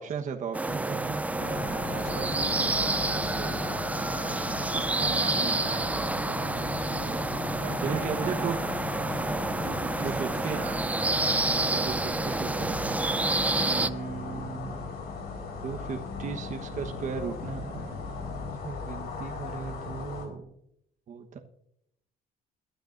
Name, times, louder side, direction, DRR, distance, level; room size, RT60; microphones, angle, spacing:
voice 1, 0.0-1.2 5.1-5.6 7.4-7.5 7.8-8.5 10.0-10.6 11.5-12.9 13.6-14.9 15.6-20.5 21.1-21.4, right 6 dB, 50° right, 3 dB, 1.2 m, -36 dB
sound 1, 0.5-13.9, right 2 dB, 10° right, 0.4 m, -29 dB
sound 2, 0.7-18.6, left 3 dB, 45° left, 1.8 m, -43 dB
sound 3, 1.4-20.3, left 4 dB, 75° left, 4.5 m, -39 dB
voice 2, 1.9-4.2 4.7-7.2 7.6-8.5 9.6-10.8, right 8 dB, 70° right, 4 dB, 1.7 m, -42 dB
22.5 x 10.5 x 2.6 m, 0.78 s
cardioid pair, 110°, 17 cm